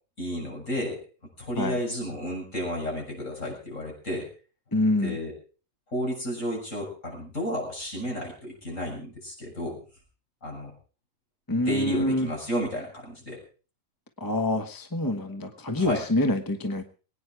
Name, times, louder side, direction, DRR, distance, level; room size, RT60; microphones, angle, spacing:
voice 1, 0.2-1.0 1.4-4.3 5.0-5.3 5.9-9.8 10.4-10.7 11.5-13.4 15.7-16.0, equal, 65° left, -1 dB, 7.6 m, -32 dB
voice 2, 4.7-5.2 11.5-12.3 14.2-16.8, left 1 dB, 15° left, 6 dB, 1.2 m, -26 dB
22.0 x 9.7 x 4.8 m, 0.38 s
omnidirectional pair, 1.4 m